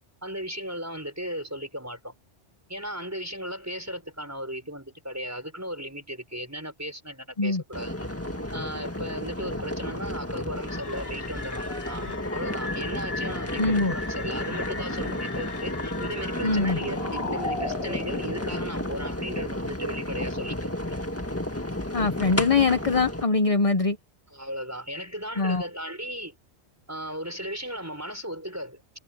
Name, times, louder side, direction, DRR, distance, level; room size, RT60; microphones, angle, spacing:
voice 1, 0.2-2.1 2.7-8.1 8.5-21.0 24.3-26.4 26.9-28.8, equal, 15° right, 5.8 m, -36 dB
sound 1, 7.7-23.2, left 1 dB, 10° left, 1.7 m, -32 dB
sound 2, 10.7-19.0, left 3 dB, 55° left, 2.2 m, -37 dB
voice 2, 13.6-13.9 16.4-16.8 21.9-24.0 25.4-25.7, left 3 dB, 35° left, 0.9 m, -23 dB
omnidirectional pair, 1.2 m